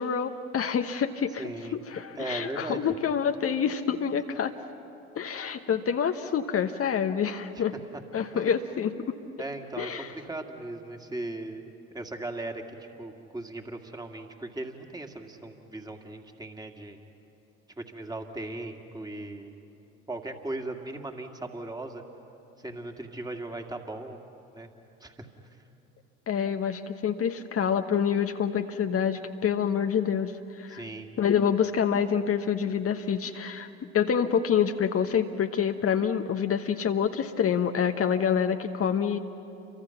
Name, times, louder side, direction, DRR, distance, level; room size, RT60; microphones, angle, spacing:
voice 1, 0.0-4.5 5.1-7.7 8.1-9.2 9.8-10.1 26.3-30.8 31.2-33.7 33.9-39.2, left 7 dB, 35° left, 7 dB, 1.1 m, -27 dB
voice 2, 1.4-1.8 2.2-2.8 7.9-8.0 8.3-8.5 9.4-11.7 11.9-12.6 13.0-17.0 17.8-19.5 20.1-22.0 22.6-24.2 24.5-24.7 25.0-25.3 30.7-31.1, right 2 dB, 10° right, 3 dB, 2.3 m, -38 dB
29.5 x 24.5 x 5.9 m, 2.8 s
figure-of-eight pair, 65°, 42 cm